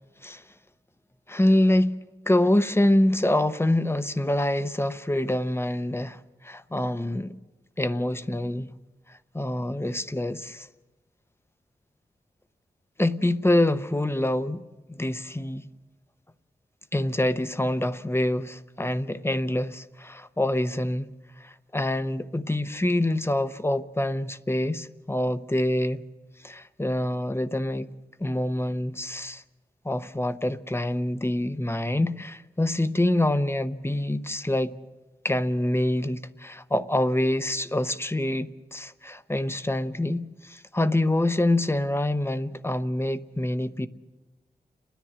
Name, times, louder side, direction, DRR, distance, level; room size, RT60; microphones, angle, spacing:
voice 1, 1.3-2.0 2.3-7.4 7.8-8.7 9.1-10.7 13.0-14.6 14.9-15.7 16.9-21.1 21.4-26.0 26.4-27.9 28.2-29.4 29.8-34.8 35.2-43.9, left 1 dB, 15° left, 0.8 m, -26 dB
29.5 x 10.5 x 9.6 m
wide cardioid pair, 85°, 17 cm